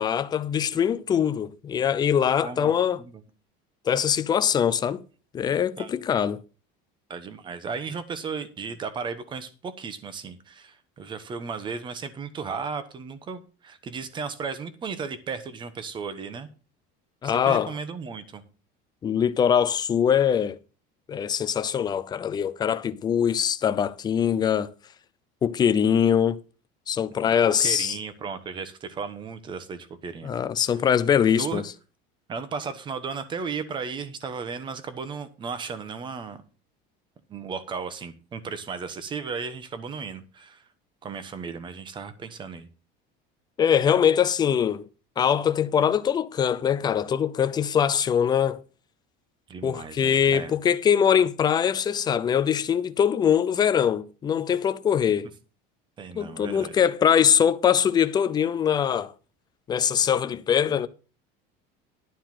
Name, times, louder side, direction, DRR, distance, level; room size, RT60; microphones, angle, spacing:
voice 1, 0.0-3.0 3.9-5.0 5.3-6.4 17.2-17.7 19.0-20.6 21.1-24.7 25.4-26.4 26.9-28.0 30.2-31.6 43.6-44.8 45.2-48.6 49.6-55.3 56.2-59.1 59.7-60.9, left 8 dB, 20° left, 0.5 m, -22 dB
voice 2, 2.4-2.7 3.0-3.2 5.8-5.9 7.1-16.5 17.2-18.4 27.5-30.3 31.3-31.6 32.3-36.4 37.3-40.6 41.0-42.7 49.5-50.5 56.0-56.7, right 5 dB, 20° right, 1.1 m, -35 dB
12.0 x 4.5 x 7.6 m
cardioid pair, 165°, 21 cm